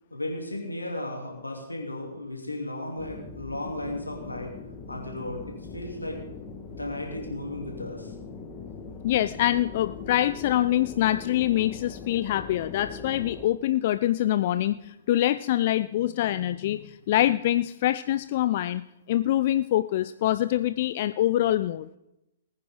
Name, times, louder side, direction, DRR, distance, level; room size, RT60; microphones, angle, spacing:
voice 1, 0.1-4.5 4.9-6.2 6.7-8.1, left 1 dB, 90° left, 0 dB, 3.2 m, -35 dB
sound 1, 3.0-13.4, left 4 dB, 20° left, 1.7 m, -41 dB
voice 2, 9.0-21.9, left 13 dB, 45° left, 13 dB, 0.4 m, -25 dB
20.0 x 9.6 x 3.9 m, 0.89 s
figure-of-eight pair, 115°, 0 cm